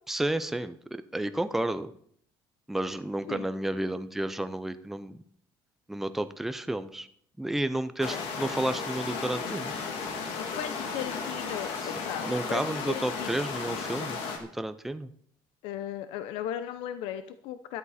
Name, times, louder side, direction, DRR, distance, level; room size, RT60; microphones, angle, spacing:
voice 1, 0.1-1.9 2.7-5.2 5.9-7.1 7.4-9.7 12.3-15.1, right 1 dB, 5° right, 11 dB, 0.5 m, -31 dB
sound 1, 8.0-14.4, left 5 dB, 70° left, 2.6 m, -34 dB
voice 2, 10.3-13.4 15.6-17.8, left 11 dB, 90° left, 11 dB, 0.7 m, -37 dB
13.0 x 12.0 x 4.2 m, 0.64 s
cardioid pair, 175°, 9 cm